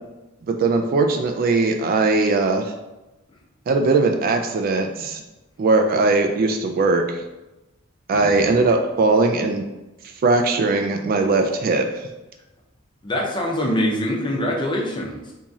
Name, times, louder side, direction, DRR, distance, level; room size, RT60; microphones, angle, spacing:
voice 1, 0.5-2.7 3.7-5.2 5.6-7.2 8.1-9.6 10.2-12.1, right 3 dB, 45° right, 4 dB, 0.3 m, -19 dB
voice 2, 8.1-8.6 13.0-15.3, left 1 dB, 20° left, -2 dB, 0.6 m, -24 dB
3.0 x 2.7 x 3.6 m, 1.0 s
head